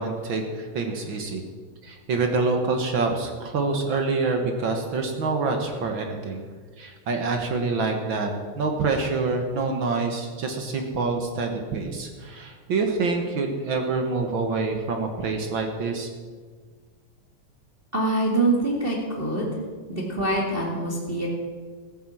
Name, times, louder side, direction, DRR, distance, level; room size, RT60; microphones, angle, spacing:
voice 1, 0.0-1.4 1.8-6.4 6.8-16.1, right 3 dB, 60° right, 4 dB, 1.3 m, -26 dB
voice 2, 17.9-19.5 19.9-21.3, right 2 dB, 20° right, -2 dB, 1.8 m, -24 dB
15.0 x 10.0 x 7.5 m, 1.5 s
omnidirectional pair, 4.0 m